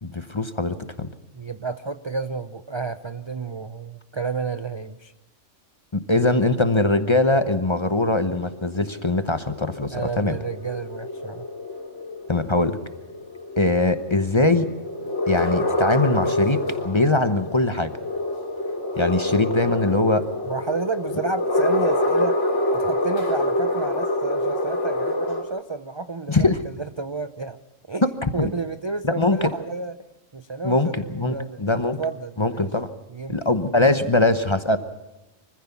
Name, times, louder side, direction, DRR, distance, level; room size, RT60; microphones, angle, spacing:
voice 1, 0.0-1.1 5.9-10.4 12.3-12.8 13.6-14.7 15.3-17.9 19.0-20.3 26.3-26.6 28.0-28.1 28.4-28.5 29.0-29.5 30.6-32.0 32.4-32.9 33.3-34.8, left 2 dB, 25° left, 10 dB, 0.9 m, -21 dB
voice 2, 1.3-5.1 9.9-11.4 20.5-22.4 22.7-27.6 27.9-28.0 28.3-30.0 30.3-32.7 33.1-33.4, right 4 dB, 35° right, 10 dB, 0.5 m, -31 dB
sound 1, 8.1-25.4, left 1 dB, 60° left, 3.9 m, -27 dB
24.5 x 15.5 x 7.1 m, 1.0 s
omnidirectional pair, 1.4 m